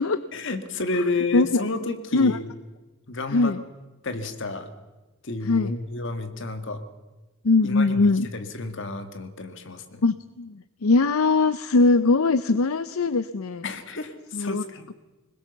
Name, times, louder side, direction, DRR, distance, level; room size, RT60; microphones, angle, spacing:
voice 1, 0.3-2.5 3.1-3.5 4.0-4.7 5.2-6.8 7.6-10.0 13.6-14.9, left 3 dB, 55° left, 8 dB, 1.8 m, -31 dB
voice 2, 1.3-1.6 2.1-2.4 3.3-3.6 5.4-5.8 7.4-8.3 10.0-13.6 14.3-14.6, left 3 dB, 75° left, 14 dB, 0.6 m, -21 dB
22.0 x 20.5 x 7.0 m, 1.1 s
head